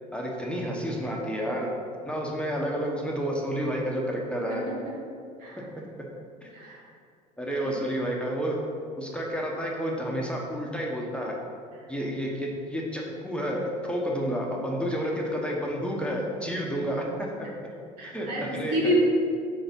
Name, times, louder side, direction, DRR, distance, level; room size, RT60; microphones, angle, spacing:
voice 1, 0.1-1.7 2.1-4.6 6.4-6.5 7.4-8.7 9.0-11.3 11.9-17.5 18.0-19.0, equal, 5° left, -2 dB, 1.1 m, -30 dB
voice 2, 4.5-5.0 5.4-5.6 6.5-6.8 7.6-7.7 18.0-19.0, equal, 75° right, -3 dB, 1.5 m, -29 dB
4.9 x 3.9 x 5.3 m, 2.3 s
hypercardioid pair, 65°, 21 cm